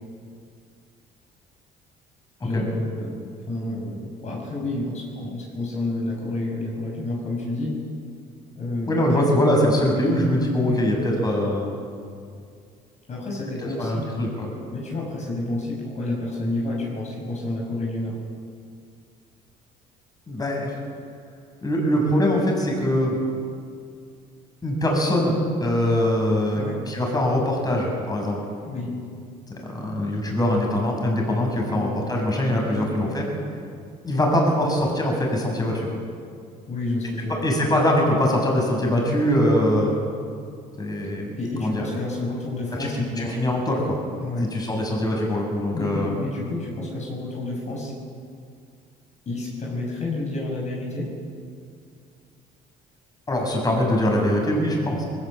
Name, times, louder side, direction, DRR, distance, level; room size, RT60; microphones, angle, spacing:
voice 1, 2.4-3.2 3.5-7.8 8.6-9.2 10.7-10.9 13.1-14.1 14.7-18.2 26.5-26.8 28.6-28.9 31.7-31.9 32.7-32.9 36.7-37.4 41.4-43.4 44.2-44.5 45.7-47.9 49.3-51.1, left 2 dB, 45° left, -1 dB, 6.2 m, -30 dB
voice 2, 8.9-11.7 13.6-14.5 20.3-20.8 21.6-23.2 24.6-28.4 29.7-33.3 34.0-35.9 37.4-39.9 40.8-41.3 41.6-41.8 43.0-44.0 44.5-46.2 53.3-55.0, left 1 dB, 20° left, 0 dB, 6.9 m, -22 dB
21.5 x 18.0 x 8.7 m, 2.3 s
cardioid pair, 110°, 17 cm